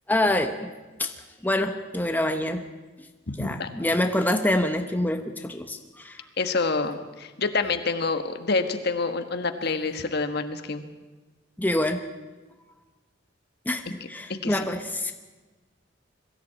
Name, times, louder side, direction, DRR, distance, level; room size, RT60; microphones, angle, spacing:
voice 1, 0.1-0.7 1.0-1.1 1.4-2.6 3.4-6.3 11.6-12.0 13.7-15.1, left 1 dB, 10° left, 6 dB, 1.0 m, -26 dB
voice 2, 3.3-3.7 6.4-10.8 14.4-14.6, left 3 dB, 55° left, 8 dB, 1.5 m, -27 dB
21.5 x 14.0 x 8.7 m, 1.3 s
head